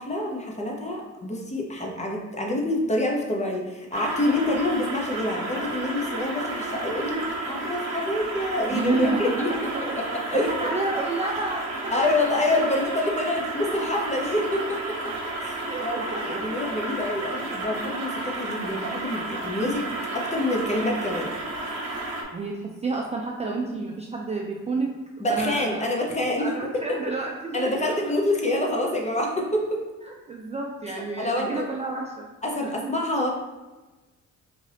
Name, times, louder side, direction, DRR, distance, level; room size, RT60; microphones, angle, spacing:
voice 1, 0.0-9.7 10.0-10.7 11.9-15.1 15.4-19.9 20.1-21.3 25.2-27.0 27.5-29.8 31.2-31.6 32.4-33.3, left 1 dB, 25° left, 0 dB, 0.8 m, -27 dB
sound 1, 3.9-22.2, right 2 dB, 55° right, 0.9 m, -32 dB
voice 2, 8.7-10.1 10.3-11.9 13.3-13.4 15.6-16.5 22.3-25.0 25.3-25.9 26.4-28.0 30.0-32.3 32.6-32.7, right 3 dB, 20° right, -1 dB, 0.3 m, -30 dB
3.7 x 2.6 x 3.3 m, 1.2 s
cardioid pair, 90°, 30 cm